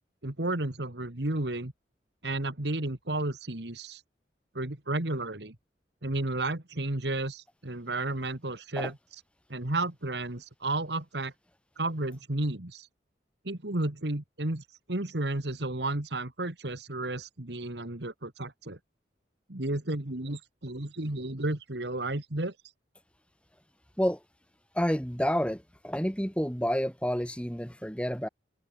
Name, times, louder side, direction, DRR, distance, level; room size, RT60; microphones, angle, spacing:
voice 1, 0.2-1.7 2.2-4.0 4.5-5.6 6.0-8.9 9.5-11.3 11.8-12.9 13.4-18.8 19.5-22.5, right 2 dB, 75° right, 2.2 m, -32 dB
voice 2, 24.7-28.3, equal, 5° left, 2.7 m, -29 dB
head